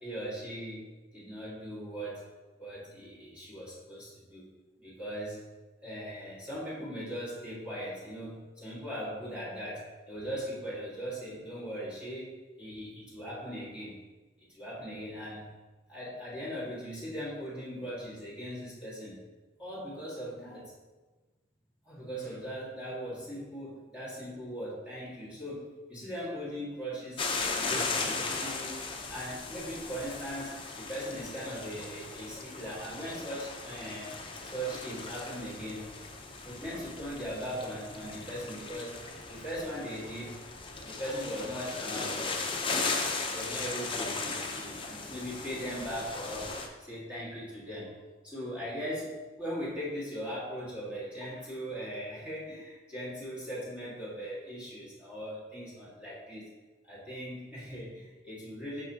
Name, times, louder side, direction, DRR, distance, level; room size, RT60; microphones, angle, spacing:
voice 1, 0.0-0.9 1.1-2.2 2.6-4.5 4.8-5.4 5.8-13.9 14.4-15.5 15.9-19.2 19.6-20.7 21.8-27.3 27.5-28.8 29.1-34.1 34.4-36.0 36.4-40.3 40.8-42.3 42.7-43.1 43.3-48.0 48.2-56.5 56.8-58.8, equal, 5° right, -9 dB, 1.5 m, -39 dB
sound 1, 27.2-46.7, left 4 dB, 30° left, 0.5 m, -37 dB
6.2 x 5.6 x 2.7 m, 1.2 s
head